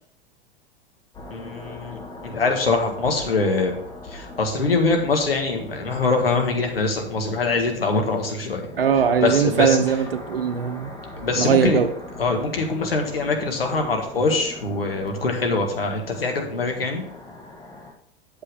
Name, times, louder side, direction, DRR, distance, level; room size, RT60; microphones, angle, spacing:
sound 1, 1.1-17.9, left 2 dB, 15° left, 1.5 m, -40 dB
voice 1, 1.3-3.7 4.1-8.6 9.2-9.8 11.2-11.8 12.2-17.0, left 3 dB, 80° left, 2 dB, 1.8 m, -23 dB
voice 2, 8.8-10.9 11.4-11.9, right 7 dB, 75° right, 9 dB, 1.0 m, -20 dB
8.3 x 7.4 x 3.6 m, 0.63 s
figure-of-eight pair, 95°, 29 cm